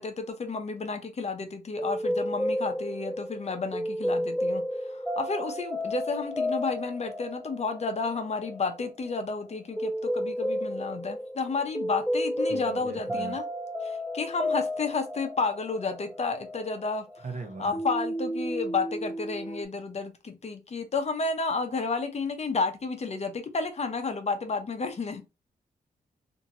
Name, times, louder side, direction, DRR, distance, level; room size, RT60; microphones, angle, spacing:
voice 1, 0.0-13.4 13.8-17.2 17.6-25.2, left 4 dB, 40° left, 0.6 m, -31 dB
sound 1, 1.8-17.4 17.7-19.6, equal, 5° left, 0.4 m, -32 dB
voice 2, 12.5-13.3 17.2-17.8, right 3 dB, 50° right, 0.7 m, -39 dB
2.9 x 2.6 x 2.5 m
cardioid pair, 85°, 17 cm